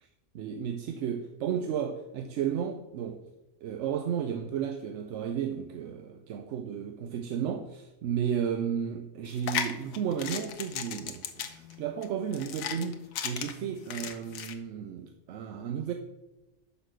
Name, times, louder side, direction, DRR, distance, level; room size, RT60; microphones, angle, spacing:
voice 1, 0.3-3.2 3.6-15.9, right 8 dB, 70° right, 0.8 m, -33 dB
sound 1, 9.3-14.5, left 8 dB, 85° left, 1.1 m, -36 dB
6.1 x 5.5 x 6.2 m
omnidirectional pair, 1.4 m